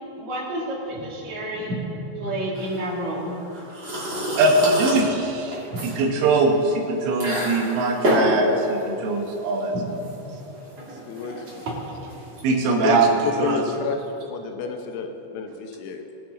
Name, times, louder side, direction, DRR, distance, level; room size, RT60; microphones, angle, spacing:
voice 1, 0.2-3.4 5.7-6.3 9.7-9.9 10.2-10.4 11.7-11.8 12.0-12.1, right 1 dB, 50° right, -3 dB, 2.5 m, -30 dB
sound 1, 2.5-13.5, equal, 30° right, 2.1 m, -29 dB
voice 2, 4.4-5.6 5.8-10.0 12.4-13.1 13.4-13.6, right 3 dB, 80° right, 0 dB, 3.8 m, -21 dB
voice 3, 11.1-11.5 12.7-13.0 13.2-16.1, left 6 dB, 80° left, 5 dB, 3.3 m, -30 dB
21.5 x 7.3 x 4.0 m, 3.0 s
omnidirectional pair, 5.6 m